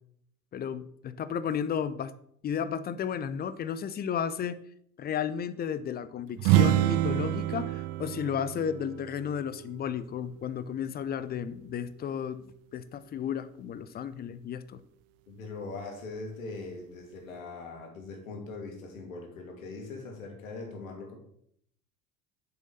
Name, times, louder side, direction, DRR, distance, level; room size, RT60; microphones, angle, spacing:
voice 1, 0.5-2.1 2.4-4.6 5.0-14.8, left 8 dB, 25° left, 14 dB, 0.5 m, -33 dB
sound 1, 6.4-10.1, right 15 dB, 40° right, 0.4 m, -27 dB
voice 2, 15.3-21.2, left 3 dB, 70° left, 2 dB, 2.6 m, -41 dB
8.2 x 6.9 x 4.1 m, 0.67 s
figure-of-eight pair, 70°, 41 cm